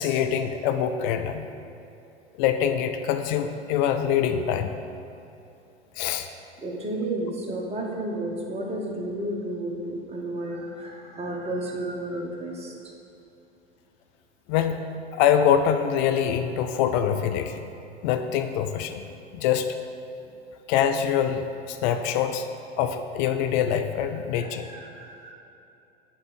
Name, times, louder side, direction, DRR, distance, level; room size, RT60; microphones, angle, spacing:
voice 1, 0.0-1.4 2.4-4.7 6.0-6.3 14.5-14.8 15.2-17.6 18.0-19.1 19.3-19.7 20.7-22.5 22.8-24.7, left 9 dB, 45° left, 7 dB, 0.5 m, -24 dB
voice 2, 6.6-12.7 24.3-25.3, right 1 dB, 20° right, -2 dB, 1.4 m, -32 dB
7.4 x 4.4 x 6.3 m, 2.8 s
figure-of-eight pair, 85°, 33 cm